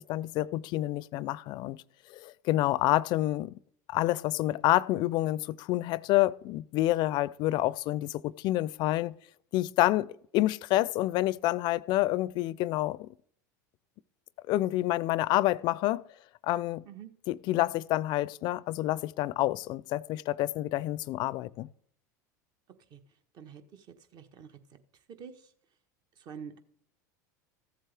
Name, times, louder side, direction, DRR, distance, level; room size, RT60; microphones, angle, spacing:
voice 1, 0.0-1.8 2.1-3.5 3.9-9.2 9.5-10.1 10.3-13.1 14.5-16.0 16.4-16.8 17.3-21.7, left 16 dB, 50° left, 0.4 m, -28 dB
voice 2, 23.3-23.9 24.1-24.5 25.2-25.5 26.2-26.6, right 7 dB, 45° right, 1.3 m, -46 dB
14.5 x 7.5 x 3.4 m
hypercardioid pair, 85°, 10 cm